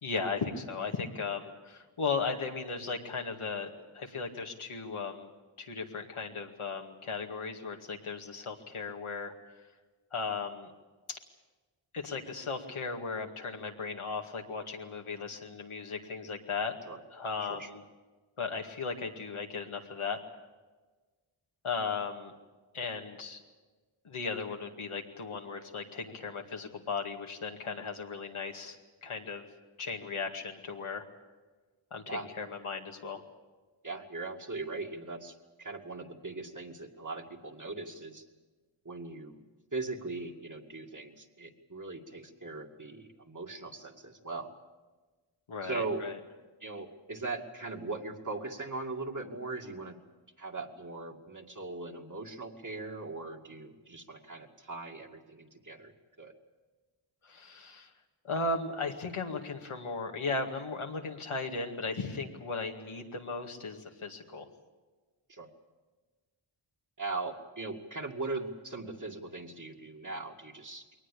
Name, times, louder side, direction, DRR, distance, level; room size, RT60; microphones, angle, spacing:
voice 1, 0.0-5.3 5.6-9.3 10.1-10.7 11.1-11.2 11.9-16.7 17.1-17.8 18.4-20.2 21.6-22.3 22.7-23.4 24.0-28.8 29.0-29.4 29.8-31.0 31.9-33.2 45.5-46.2 57.2-57.9 58.2-64.5, left 4 dB, 80° left, 2 dB, 2.2 m, -36 dB
voice 2, 33.8-38.2 38.8-39.4 39.7-44.5 45.6-46.0 46.6-50.0 50.4-56.3 65.3-65.5 67.0-71.1, right 3 dB, 35° right, 2 dB, 2.4 m, -40 dB
21.5 x 19.0 x 8.6 m, 1.3 s
cardioid pair, 45°, 49 cm